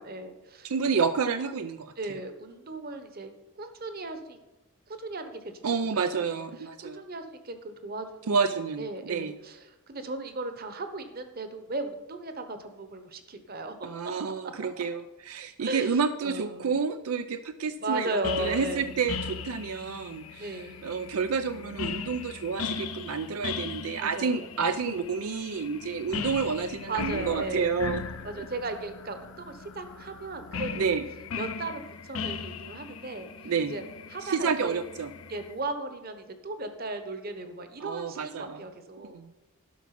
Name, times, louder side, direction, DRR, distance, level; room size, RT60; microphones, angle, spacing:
voice 1, 0.0-1.1 2.0-4.4 4.9-5.8 6.0-6.3 6.9-8.4 8.8-13.8 15.6-16.7 17.8-18.9 20.4-20.9 24.0-24.8 26.9-27.8 28.2-31.0 31.4-33.3 33.7-33.8 34.1-34.8 35.3-39.3, right 2 dB, 45° right, 8 dB, 1.1 m, -36 dB
voice 2, 0.6-1.9 5.6-7.0 8.3-9.4 13.8-28.0 30.7-31.0 33.5-33.7 34.2-35.1 37.8-38.6 39.1-39.3, right 5 dB, 75° right, 9 dB, 0.5 m, -29 dB
sound 1, 18.2-35.5, left 5 dB, 70° left, 0.7 m, -38 dB
12.0 x 6.0 x 5.9 m, 1.1 s
head